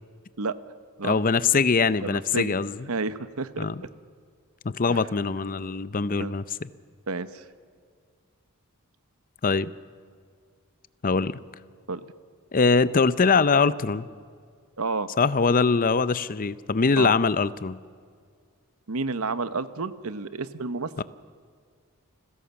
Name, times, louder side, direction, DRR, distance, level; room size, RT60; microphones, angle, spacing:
voice 1, 1.0-2.9 3.6-3.8 4.6-6.7 9.4-9.7 11.0-11.4 12.5-14.1 15.2-17.8 21.0-21.1, left 4 dB, 40° left, 16 dB, 0.6 m, -23 dB
voice 2, 2.0-2.5 2.9-3.7 4.9-5.1 6.2-6.3 7.1-7.4 11.9-12.0 14.8-15.1 17.0-17.1 18.9-21.0, right 3 dB, 75° right, 13 dB, 1.0 m, -30 dB
29.0 x 16.0 x 7.1 m, 2.1 s
head